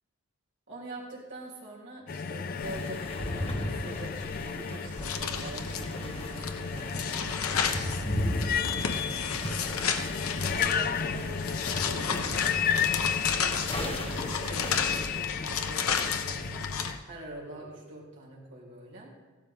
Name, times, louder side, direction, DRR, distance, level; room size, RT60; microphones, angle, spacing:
voice 1, 0.7-7.7 8.3-10.0 10.5-12.7 13.7-16.7 17.0-19.1, right 1 dB, 60° right, -5 dB, 3.4 m, -45 dB
sound 1, 2.1-17.0, left 7 dB, 45° left, 0.4 m, -33 dB
sound 2, 2.6-15.1, left 1 dB, 25° left, 1.3 m, -37 dB
sound 3, 4.9-16.9, left 6 dB, 90° left, 0.9 m, -33 dB
15.5 x 12.5 x 3.7 m, 1.3 s
head